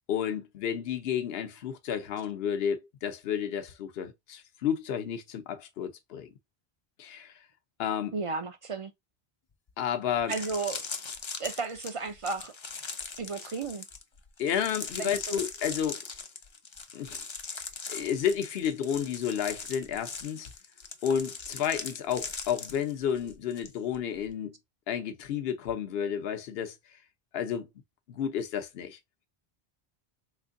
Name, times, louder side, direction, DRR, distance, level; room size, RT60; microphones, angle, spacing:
voice 1, 0.1-6.3 7.0-7.4 7.8-8.1 9.8-10.3 14.4-16.0 16.9-17.3 17.9-20.5 21.0-24.5 24.9-26.8 27.3-27.7 28.1-29.0, left 8 dB, 75° left, 0.9 m, -31 dB
voice 2, 8.1-8.9 10.3-10.8 11.4-12.5 13.2-13.9 15.0-15.4, right 4 dB, 50° right, 0.4 m, -33 dB
sound 1, 9.7-9.8 10.2-23.7 23.9-24.3, left 5 dB, 40° left, 0.4 m, -40 dB
3.5 x 3.2 x 2.5 m
omnidirectional pair, 1.0 m